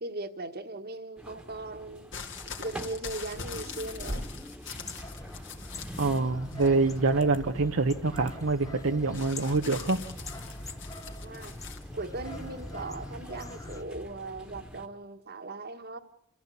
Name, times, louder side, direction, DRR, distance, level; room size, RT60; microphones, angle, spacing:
voice 1, 0.0-2.1 2.6-4.3 11.2-11.6 11.9-16.0, right 2 dB, 50° right, 1.5 m, -38 dB
Library sounds, 1.2-14.9, equal, 5° right, 1.6 m, -46 dB
sound 1, 2.1-6.2 6.5-7.1 9.1-11.8 12.7-12.8, left 4 dB, 60° left, 2.9 m, -41 dB
outdoors mono suburb, 4.7-13.8, left 1 dB, 15° left, 1.0 m, -43 dB
voice 2, 6.0-10.0, right 3 dB, 70° right, 0.9 m, -26 dB
28.0 x 15.0 x 8.4 m
head